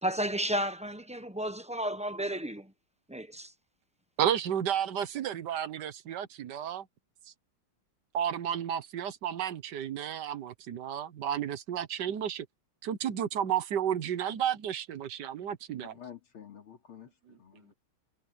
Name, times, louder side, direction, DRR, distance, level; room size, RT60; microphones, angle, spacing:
voice 1, 0.0-2.7 3.1-3.5, right 1 dB, 5° right, 0.5 m, -32 dB
voice 2, 4.2-6.9 8.1-12.5 12.8-15.9, right 9 dB, 60° right, 1.6 m, -32 dB
voice 3, 15.8-17.7, left 9 dB, 90° left, 3.9 m, -50 dB
omnidirectional pair, 2.3 m